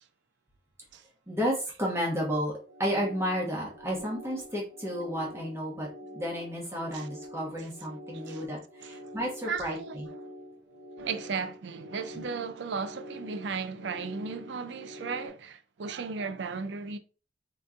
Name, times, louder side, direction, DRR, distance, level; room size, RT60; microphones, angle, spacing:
voice 1, 1.3-2.5 2.8-10.1 12.1-12.2, equal, 15° right, 1.2 m, -32 dB
sound 1, 2.5-15.3, equal, 50° right, 1.1 m, -46 dB
voice 2, 9.5-10.0 10.2-10.3 11.0-17.0, right 5 dB, 85° right, 0.5 m, -35 dB
4.3 x 3.0 x 2.5 m
head